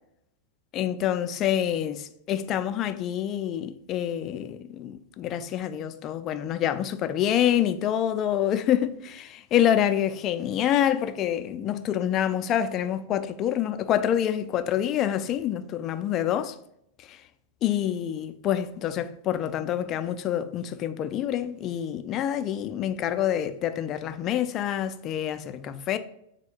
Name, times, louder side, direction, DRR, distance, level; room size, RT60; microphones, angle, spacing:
voice 1, 0.7-16.6 17.0-17.2 17.6-26.0, left 10 dB, 40° left, 0.3 m, -27 dB
4.3 x 2.2 x 4.5 m
hypercardioid pair, 115°, 0 cm